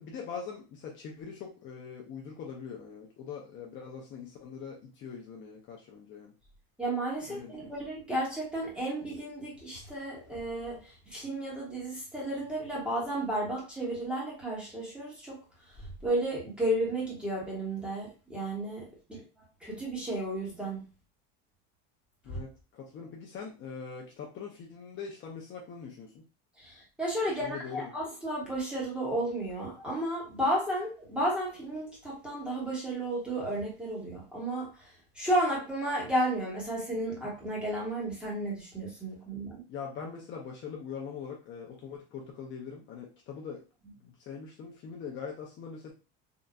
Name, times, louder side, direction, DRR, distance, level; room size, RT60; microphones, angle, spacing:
voice 1, 0.0-6.3 7.3-7.7 22.2-26.2 27.4-27.9 39.7-43.6 44.0-45.9, left 6 dB, 40° left, -1 dB, 0.7 m, -42 dB
voice 2, 6.8-15.4 15.7-19.2 19.6-20.8 22.3-22.4 26.6-39.6, right 1 dB, 5° right, -5 dB, 1.3 m, -33 dB
3.8 x 2.5 x 2.2 m, 0.31 s
cardioid pair, 145°, 29 cm